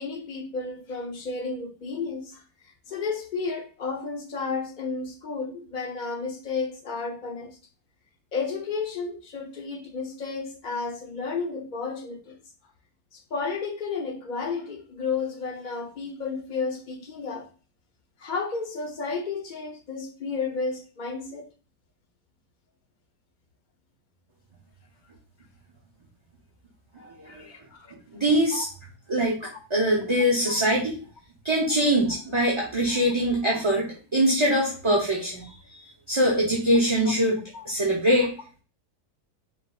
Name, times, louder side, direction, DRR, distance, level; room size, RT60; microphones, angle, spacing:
voice 1, 0.0-7.6 8.3-12.4 13.1-17.5 18.2-21.5 27.2-27.9 28.5-28.6 29.4-29.6 30.5-30.6 33.5-33.6 34.5-34.6 37.0-37.1 37.5-37.7 38.2-38.3, left 4 dB, 55° left, 0.5 m, -32 dB
voice 2, 26.9-27.5 28.1-28.7 29.1-29.4 29.7-31.0 31.4-35.5 36.1-37.4 37.6-38.3, equal, 25° right, 0.7 m, -23 dB
4.7 x 3.9 x 2.3 m
omnidirectional pair, 1.7 m